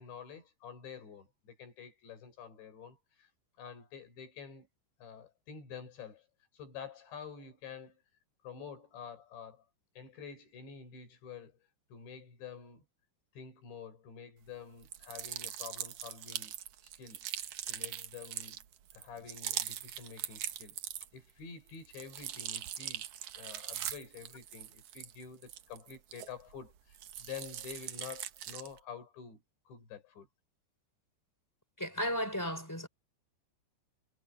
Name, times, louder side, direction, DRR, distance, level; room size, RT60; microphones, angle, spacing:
voice 1, 0.0-3.3 3.6-4.7 5.0-6.3 6.5-8.0 8.4-9.7 9.9-11.6 11.9-12.8 13.3-16.6 16.9-17.3 17.7-18.6 18.9-20.8 21.1-23.0 23.4-29.4 29.7-30.3, left 6 dB, 80° left, 8.4 m, -48 dB
sound 1, 14.8-21.3 21.7-26.6 26.9-28.8, right 11 dB, 80° right, 1.7 m, -41 dB
voice 2, 31.8-32.9, equal, 5° left, 3.6 m, -34 dB
omnidirectional pair, 5.1 m